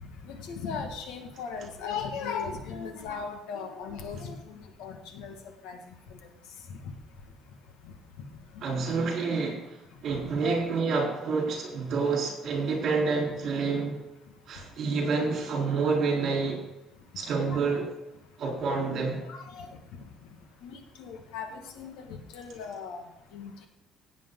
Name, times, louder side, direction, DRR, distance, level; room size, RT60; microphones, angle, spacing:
voice 1, 0.3-5.3 5.6-5.8 6.7-6.8 8.5-8.6 10.4-10.7 17.5-17.6 19.2-19.7 20.6-22.1 22.3-23.0 23.3-23.7, left 5 dB, 90° left, 4 dB, 2.0 m, -37 dB
voice 2, 8.6-9.8 10.0-14.0 14.5-16.6 17.2-17.8 18.4-19.2, right 4 dB, 40° right, -1 dB, 4.1 m, -28 dB
16.5 x 8.5 x 4.0 m, 0.95 s
cardioid pair, 180°, 0 cm